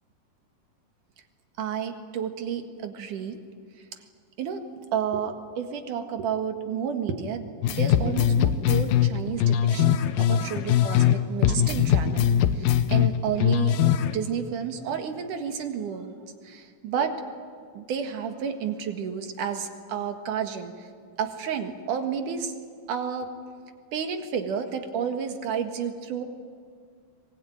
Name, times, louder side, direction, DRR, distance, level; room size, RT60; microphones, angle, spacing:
voice 1, 1.6-3.4 4.4-4.6 4.9-12.3 12.6-16.1 16.4-17.1 17.7-20.9 21.2-22.5 22.9-23.3 23.9-26.2, right 7 dB, 65° right, 6 dB, 3.1 m, -31 dB
sound 1, 7.6-11.2 11.4-14.2, left 10 dB, 80° left, 2.7 m, -21 dB
24.5 x 21.5 x 9.4 m, 2.1 s
omnidirectional pair, 4.0 m